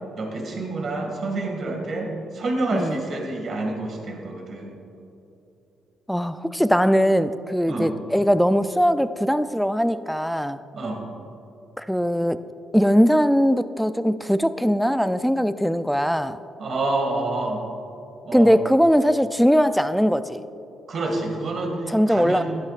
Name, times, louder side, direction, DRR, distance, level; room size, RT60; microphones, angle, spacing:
voice 1, 0.2-4.8 7.7-7.9 10.7-11.0 16.6-17.6 18.2-18.6 20.9-22.4, right 2 dB, 55° right, 1 dB, 2.1 m, -28 dB
voice 2, 6.1-10.6 11.8-12.4 12.7-16.4 18.3-20.4 21.9-22.4, equal, ahead, 12 dB, 0.4 m, -20 dB
13.5 x 11.0 x 2.5 m, 2.8 s
cardioid pair, 70°, 0 cm